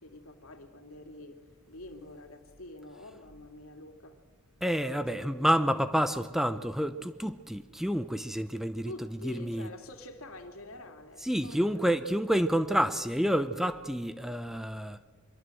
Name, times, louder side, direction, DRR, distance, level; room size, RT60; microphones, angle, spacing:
voice 1, 0.0-1.4 1.7-4.2 4.9-5.5 8.8-11.6, left 1 dB, 75° left, 2.7 m, -47 dB
voice 2, 4.6-9.7 11.2-15.0, equal, ahead, 0.7 m, -29 dB
25.0 x 22.5 x 7.8 m
head